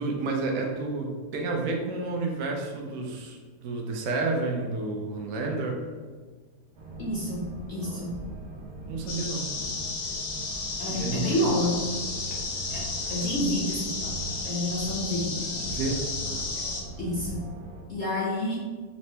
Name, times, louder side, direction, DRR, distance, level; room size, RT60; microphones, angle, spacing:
voice 1, 0.0-5.8 7.9-8.5 8.9-9.5 10.9-11.5 15.7-16.4, right 3 dB, 65° right, 1 dB, 0.8 m, -31 dB
sound 1, 6.7-17.8, right 2 dB, 90° right, 1.3 m, -41 dB
voice 2, 7.0-8.1 10.8-11.8 12.7-12.8 13.1-15.5 17.0-17.4 17.9-18.5, left 1 dB, 70° left, -5 dB, 0.6 m, -29 dB
sound 2, 9.1-16.8, left 3 dB, 90° left, 1.3 m, -33 dB
4.2 x 2.1 x 2.7 m, 1.4 s
omnidirectional pair, 1.8 m